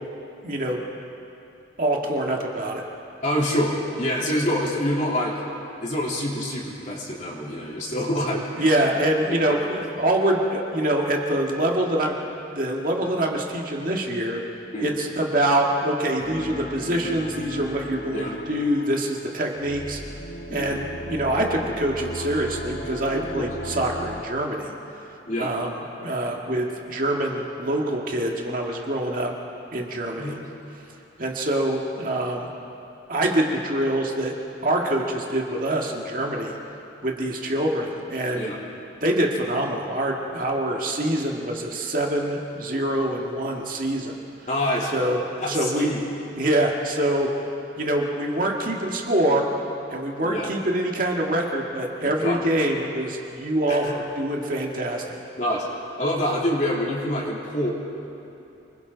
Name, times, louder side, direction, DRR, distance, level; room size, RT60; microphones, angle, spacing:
voice 1, 0.4-0.8 1.8-2.8 8.6-12.1 12.6-14.4 14.8-20.0 20.5-24.7 25.4-29.3 29.7-30.4 31.2-32.5 33.1-34.3 34.6-36.5 37.0-38.5 39.0-44.2 44.9-45.2 45.5-45.9 46.4-47.3 47.8-49.5 49.9-55.2, right 1 dB, 45° right, 0 dB, 2.0 m, -25 dB
voice 2, 3.2-5.4 5.8-8.8 9.3-9.6 10.0-10.1 14.7-15.0 18.1-18.3 20.5-20.7 23.1-23.4 25.3-25.5 30.2-30.4 38.3-38.6 44.5-45.1 45.4-46.0 50.2-50.5 52.0-52.4 53.7-53.9 55.4-55.7 56.0-57.7, equal, 40° left, -4 dB, 3.6 m, -26 dB
sound 1, 16.2-24.2, equal, 60° left, 1.6 m, -35 dB
29.0 x 21.5 x 4.1 m, 2.8 s
head